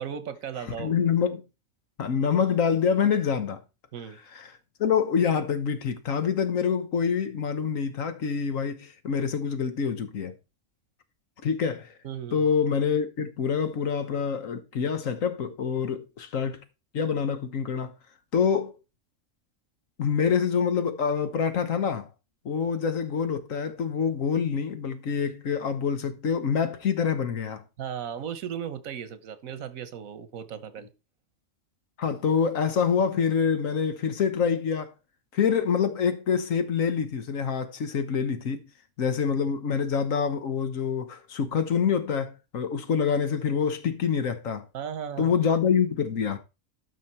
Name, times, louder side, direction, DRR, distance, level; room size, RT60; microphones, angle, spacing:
voice 1, 0.0-1.1 3.9-4.2 12.0-12.5 27.8-30.9 44.7-45.4, right 8 dB, 90° right, 1.4 m, -36 dB
voice 2, 0.8-1.4 2.0-3.6 4.8-10.3 11.4-11.9 12.3-16.6 16.9-17.9 18.3-18.8 20.0-22.1 22.4-27.6 32.0-34.9 35.3-38.6 39.0-44.6 45.2-46.4, left 6 dB, 75° left, 1.5 m, -26 dB
12.5 x 5.7 x 4.4 m
omnidirectional pair, 1.4 m